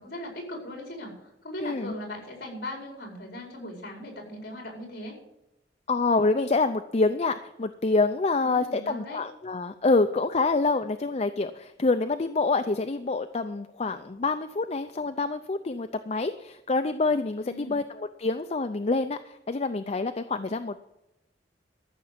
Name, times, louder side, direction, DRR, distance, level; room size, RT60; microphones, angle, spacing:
voice 1, 0.0-5.1 8.4-9.2 17.4-17.7, left 1 dB, 60° left, 0 dB, 5.0 m, -39 dB
voice 2, 1.6-1.9 5.9-20.8, left 3 dB, 35° left, 9 dB, 0.5 m, -26 dB
13.5 x 6.8 x 7.5 m, 0.88 s
head